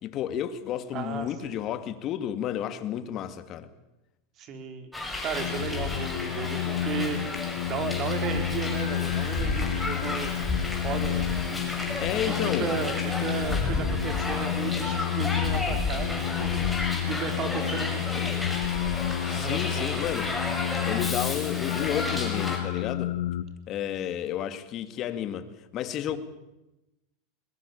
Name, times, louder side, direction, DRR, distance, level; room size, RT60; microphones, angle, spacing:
voice 1, 0.0-3.7 12.0-12.7 19.3-20.3 20.9-23.1 23.7-25.5 25.7-26.2, left 10 dB, 40° left, 2.3 m, -31 dB
voice 2, 0.9-1.6 4.4-4.9 5.2-10.3 10.7-12.0 12.3-18.5 19.3-20.5 22.8-22.9 26.1-26.2, right 7 dB, 40° right, 4.5 m, -35 dB
Hiss, 4.9-22.6, left 2 dB, 5° left, 6.5 m, -32 dB
sound 1, 5.3-23.4, left 13 dB, 75° left, 1.3 m, -30 dB
22.0 x 21.5 x 8.7 m
supercardioid pair, 130°, 0 cm